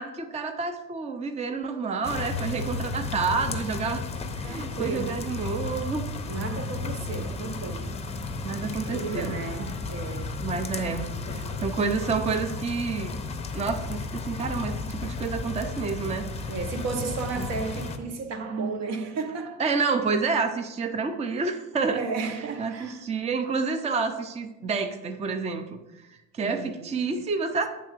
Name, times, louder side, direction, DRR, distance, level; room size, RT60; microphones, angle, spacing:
voice 1, 0.0-4.0 4.4-6.1 7.2-7.4 8.4-9.7 10.4-13.1 13.5-16.3 17.4-17.5 19.6-22.0 22.6-25.8 26.1-27.7, right 4 dB, 20° right, 0.5 m, -29 dB
sound 1, 2.0-18.0, left 4 dB, 20° left, 0.7 m, -33 dB
voice 2, 4.4-5.3 6.3-7.9 8.6-10.4 16.5-19.6 21.9-23.0 26.4-26.9, right 4 dB, 60° right, 0.9 m, -33 dB
8.9 x 3.8 x 6.5 m
cardioid pair, 140°, 30 cm